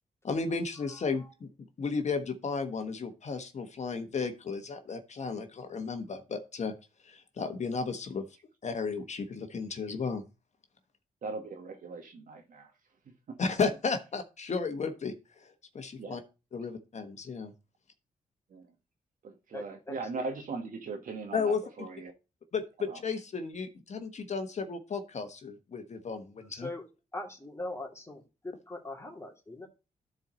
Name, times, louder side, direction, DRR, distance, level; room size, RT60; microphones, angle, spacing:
voice 1, 0.2-1.5 1.8-6.7 7.0-8.3 8.6-10.2 13.4-16.2 16.5-17.5 21.3-21.6 22.5-26.7, left 4 dB, 50° left, 1.3 m, -34 dB
voice 2, 11.2-12.7 13.3-13.4 16.0-16.2 18.5-18.6 19.2-22.1 22.9-23.0, right 3 dB, 70° right, 1.8 m, -39 dB
voice 3, 19.5-19.9 26.5-26.8 27.1-29.7, left 2 dB, 20° left, 2.8 m, -41 dB
12.5 x 4.4 x 4.0 m
cardioid pair, 70°, 15 cm